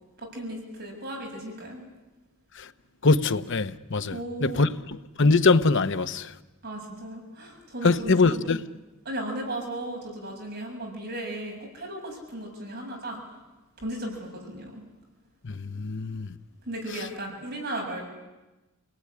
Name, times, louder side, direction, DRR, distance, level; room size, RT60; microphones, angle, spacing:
voice 1, 0.2-1.8 4.1-4.6 6.6-8.6 9.0-13.2 13.8-14.8 16.6-18.0, right 1 dB, 55° right, 7.2 m, -36 dB
voice 2, 3.0-4.2 4.4-4.7 5.2-6.3 7.8-8.6 15.4-16.3, left 3 dB, 60° left, 1.0 m, -22 dB
29.0 x 19.0 x 9.9 m
head